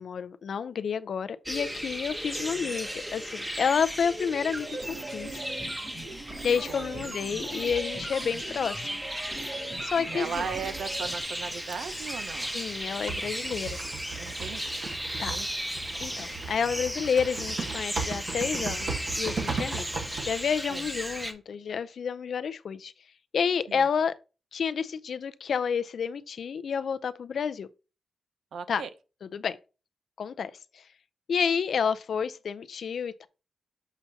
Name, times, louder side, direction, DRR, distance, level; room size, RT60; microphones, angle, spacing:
voice 1, 0.0-5.4 6.4-9.0 9.4-10.5 12.5-13.8 15.2-15.4 16.0-19.9 20.2-22.9 23.3-24.1 24.5-27.7 28.7-28.8 29.3-29.6 30.2-30.8 31.3-33.3, left 6 dB, 70° left, 0.5 m, -30 dB
sound 1, 1.5-21.3, equal, 10° right, 1.0 m, -36 dB
voice 2, 2.3-2.8 6.7-7.2 10.1-12.5 14.2-14.7 15.1-15.5 20.7-20.9 23.7-23.9 28.5-28.9, right 6 dB, 85° right, 0.6 m, -38 dB
sound 2, 4.4-11.2, right 2 dB, 35° right, 2.6 m, -40 dB
Typing, 10.3-21.3, right 4 dB, 60° right, 1.2 m, -38 dB
6.9 x 5.7 x 2.8 m
cardioid pair, 95°, 0 cm